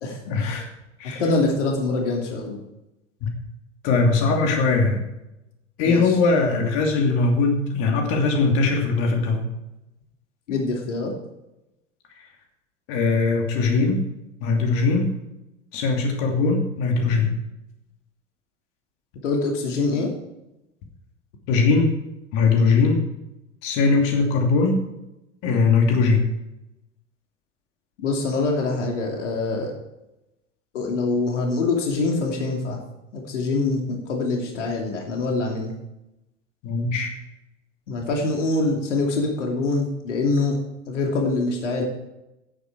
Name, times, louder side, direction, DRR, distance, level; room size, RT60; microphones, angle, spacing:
voice 1, 0.3-0.7 1.0-1.2 3.2-3.3 3.8-5.0 5.8-9.4 12.9-14.0 14.4-15.1 15.7-17.4 21.5-21.9 22.3-23.0 23.6-24.8 25.4-26.3 36.6-37.1, left 4 dB, 55° left, 2 dB, 2.8 m, -20 dB
voice 2, 1.2-2.6 5.8-6.1 10.5-11.1 19.2-20.1 28.0-29.7 30.7-32.8 33.1-35.7 37.9-40.6 40.9-41.8, left 3 dB, 75° left, 0 dB, 2.8 m, -24 dB
16.5 x 8.4 x 4.7 m, 0.92 s
figure-of-eight pair, 80°, 37 cm